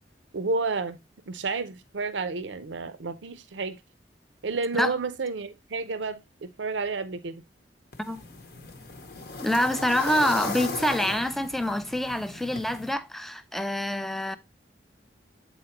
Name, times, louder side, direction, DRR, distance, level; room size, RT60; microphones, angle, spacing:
voice 1, 0.3-1.0 1.3-3.8 4.4-7.4, right 3 dB, 85° right, 0.6 m, -31 dB
sound 1, 7.9-12.9, left 3 dB, 60° left, 0.9 m, -37 dB
voice 2, 9.4-14.4, equal, ahead, 0.4 m, -26 dB
8.0 x 4.1 x 2.9 m
head